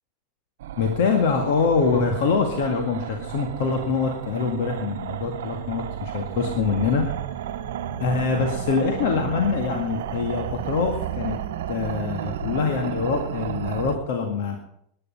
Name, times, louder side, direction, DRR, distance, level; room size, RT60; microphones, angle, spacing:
sound 1, 0.6-14.0, right 10 dB, 65° right, 1.0 m, -32 dB
voice 1, 0.8-7.1 8.0-11.4 11.7-14.6, left 5 dB, 60° left, 3 dB, 2.1 m, -24 dB
20.5 x 10.0 x 5.5 m, 0.69 s
figure-of-eight pair, 90°, 0 cm